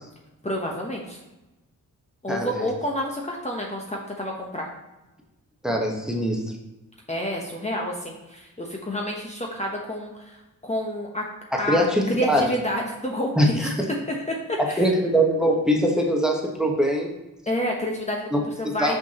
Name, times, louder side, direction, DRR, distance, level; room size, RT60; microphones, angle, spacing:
voice 1, 0.4-1.2 2.2-4.7 7.1-11.2 11.6-13.7 14.5-14.9 17.5-19.0, equal, 20° left, -1 dB, 1.0 m, -29 dB
voice 2, 2.3-2.7 5.6-6.4 11.5-12.5 13.4-13.9 14.6-17.1 18.3-19.0, equal, ahead, 0 dB, 1.2 m, -22 dB
5.9 x 5.7 x 2.9 m, 1.0 s
cardioid pair, 80°, 33 cm